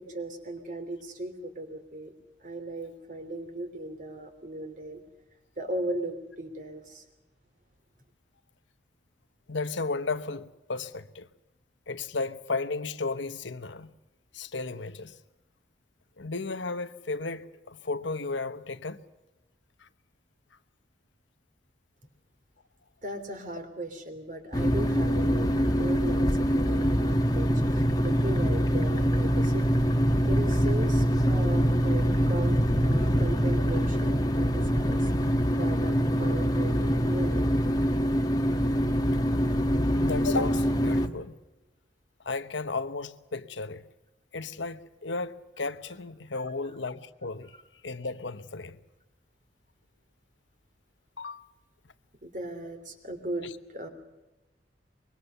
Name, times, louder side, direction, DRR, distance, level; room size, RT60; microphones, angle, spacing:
voice 1, 0.0-2.1 2.4-5.0 5.6-7.0 23.0-29.8 30.3-32.6 32.8-37.6 52.2-53.9, right 1 dB, 45° right, 3.1 m, -37 dB
voice 2, 9.5-11.3 11.9-13.9 14.3-15.1 16.2-19.0 19.8-19.9 40.0-41.4 42.2-43.8 44.3-47.5 47.8-48.8 51.2-51.4 53.4-53.5, left 3 dB, 80° left, 1.1 m, -34 dB
sound 1, 24.5-41.1, equal, 20° left, 1.3 m, -24 dB
24.5 x 22.5 x 6.8 m
head